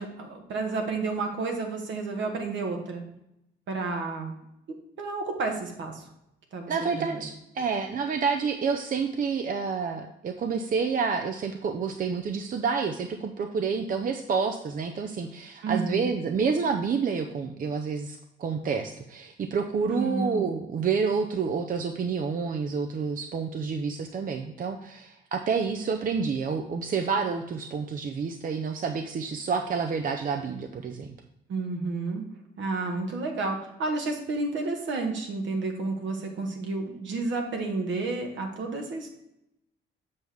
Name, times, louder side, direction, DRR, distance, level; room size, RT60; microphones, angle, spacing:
voice 1, 0.0-3.0 3.7-4.3 5.0-6.0 6.5-7.3 15.6-16.1 19.9-20.5 31.5-32.2 32.6-39.1, right 3 dB, 70° right, 3 dB, 1.6 m, -31 dB
voice 2, 6.7-31.1, right 5 dB, 45° right, 6 dB, 0.6 m, -29 dB
7.5 x 6.1 x 3.5 m, 0.84 s
cardioid pair, 90°, 20 cm